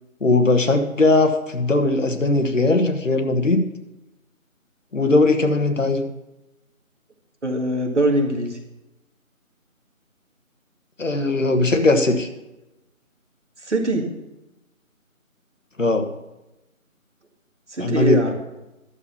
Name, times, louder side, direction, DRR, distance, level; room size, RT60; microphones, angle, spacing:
voice 1, 0.2-3.7 4.9-6.0 11.0-12.3 15.8-16.1 17.8-18.2, left 2 dB, 60° left, 6 dB, 1.4 m, -19 dB
voice 2, 7.4-8.6 13.6-14.1 17.7-18.3, right 1 dB, 55° right, 2 dB, 2.1 m, -22 dB
12.0 x 7.2 x 5.8 m, 0.97 s
figure-of-eight pair, 170°, 42 cm